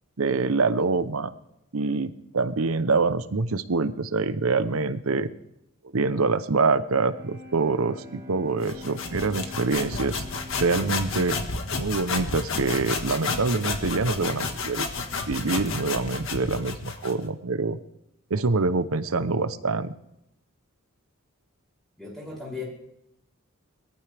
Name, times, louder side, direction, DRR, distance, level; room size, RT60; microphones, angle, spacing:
voice 1, 0.2-1.3 1.7-5.3 5.9-10.2 10.6-11.4 11.8-14.8 15.3-17.8 18.3-19.9, right 3 dB, 70° right, 13 dB, 0.8 m, -25 dB
Bowed string instrument, 6.8-12.8, left 1 dB, 15° right, 4.4 m, -46 dB
sound 1, 8.6-17.2, left 4 dB, 65° left, 1.7 m, -31 dB
voice 2, 22.0-22.6, left 4 dB, ahead, -5 dB, 6.8 m, -36 dB
21.0 x 14.5 x 3.5 m, 0.81 s
head